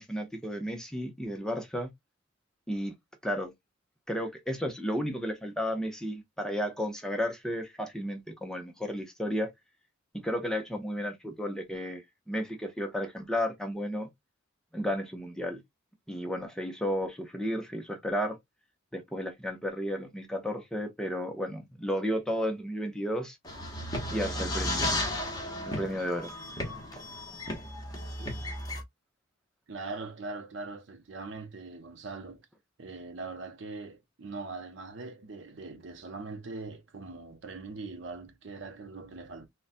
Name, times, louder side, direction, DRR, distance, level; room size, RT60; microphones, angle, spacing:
voice 1, 0.0-1.9 2.7-2.9 3.2-3.5 4.1-9.5 10.2-14.1 14.7-15.6 16.1-18.4 18.9-23.4 24.1-24.9 25.7-26.3, equal, 5° left, 0.6 m, -33 dB
sound 1, 23.4-28.8, left 1 dB, 20° left, 1.0 m, -34 dB
voice 2, 29.7-32.4 32.8-39.5, right 3 dB, 60° right, 0.6 m, -41 dB
3.9 x 2.2 x 2.5 m
head